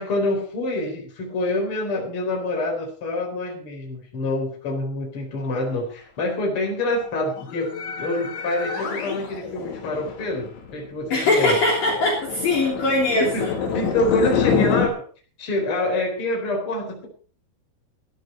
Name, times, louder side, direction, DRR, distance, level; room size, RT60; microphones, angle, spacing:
voice 1, 0.0-7.7 8.0-11.6 13.2-15.0 15.4-17.1, left 2 dB, 30° left, 0 dB, 4.7 m, -26 dB
sound 1, 7.0-14.9, left 7 dB, 70° left, 5.5 m, -27 dB
voice 2, 11.1-13.5, left 2 dB, 50° left, -3 dB, 4.5 m, -21 dB
15.5 x 13.0 x 4.5 m, 0.40 s
omnidirectional pair, 5.6 m